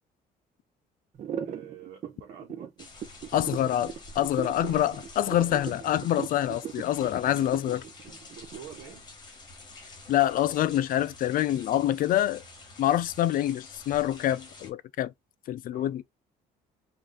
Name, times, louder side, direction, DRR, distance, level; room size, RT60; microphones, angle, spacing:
sound 1, 1.2-9.0, right 8 dB, 45° right, 0.6 m, -38 dB
voice 1, 1.3-2.8 3.3-3.7 4.4-4.8 8.3-9.0 15.7-15.9, right 9 dB, 85° right, 1.0 m, -48 dB
sound 2, 2.8-14.7, left 2 dB, 25° left, 1.2 m, -48 dB
voice 2, 3.3-7.8 10.1-12.4 12.8-15.1 15.5-16.0, left 12 dB, 55° left, 0.4 m, -26 dB
3.1 x 2.5 x 3.7 m
cardioid pair, 110°, 17 cm